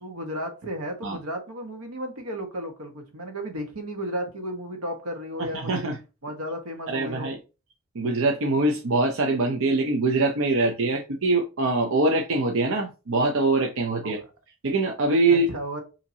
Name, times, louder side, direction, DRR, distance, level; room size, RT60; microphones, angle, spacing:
voice 1, 0.0-5.7 6.2-7.3 14.0-14.2 15.3-15.8, equal, 85° right, 1.1 m, -34 dB
voice 2, 5.5-6.0 6.9-7.4 7.9-14.2 14.6-15.5, right 2 dB, 65° right, 0.6 m, -23 dB
5.5 x 2.9 x 2.7 m
head